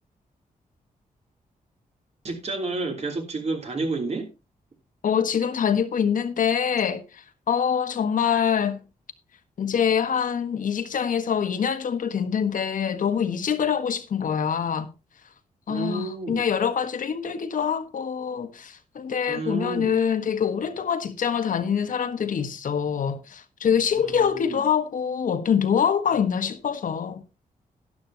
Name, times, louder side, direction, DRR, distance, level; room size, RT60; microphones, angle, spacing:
voice 1, 2.2-4.3 15.7-16.4 19.3-20.0 24.0-24.6, right 3 dB, 50° right, 3.3 m, -30 dB
voice 2, 5.0-8.8 9.6-14.9 15.7-27.2, left 7 dB, 70° left, 1.5 m, -25 dB
12.0 x 11.5 x 2.9 m
wide cardioid pair, 120°, 14 cm